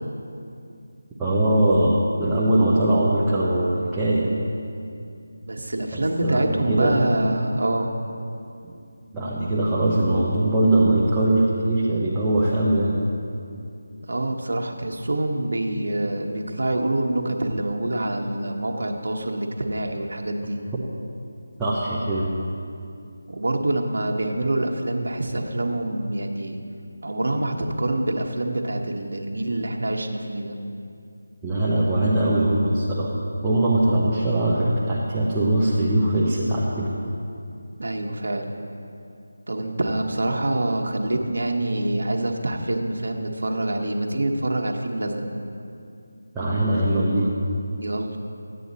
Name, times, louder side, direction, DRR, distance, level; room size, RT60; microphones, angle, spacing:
voice 1, 1.2-4.3 5.9-7.0 9.1-13.0 21.6-22.3 31.4-33.2 33.4-36.9 46.3-47.3, right 1 dB, 5° right, -10 dB, 0.8 m, -21 dB
voice 2, 5.5-7.9 14.1-20.6 23.3-26.6 27.0-30.6 37.8-38.5 39.5-45.3 47.8-48.2, right 1 dB, 70° right, 2 dB, 1.2 m, -26 dB
13.5 x 9.2 x 4.1 m, 2.6 s
figure-of-eight pair, 170°, 0 cm